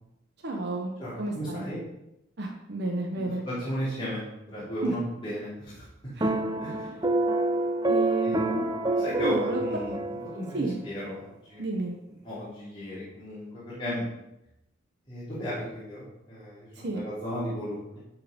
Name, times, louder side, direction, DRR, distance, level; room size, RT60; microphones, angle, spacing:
voice 1, 0.4-0.9 1.2-1.7 2.4-3.4 4.8-4.9 6.1-6.4 7.9-8.6 9.2-9.6 10.5-10.8 11.6-11.9 16.7-17.1, right 3 dB, 55° right, 0 dB, 1.1 m, -31 dB
voice 2, 1.0-1.8 3.2-6.1 6.6-6.9 8.2-10.0 10.3-11.6 12.2-14.0 15.1-18.0, equal, 25° left, -11 dB, 3.4 m, -35 dB
sound 1, 6.2-10.7, right 2 dB, 20° right, 0.6 m, -27 dB
11.5 x 4.8 x 5.3 m, 0.90 s
head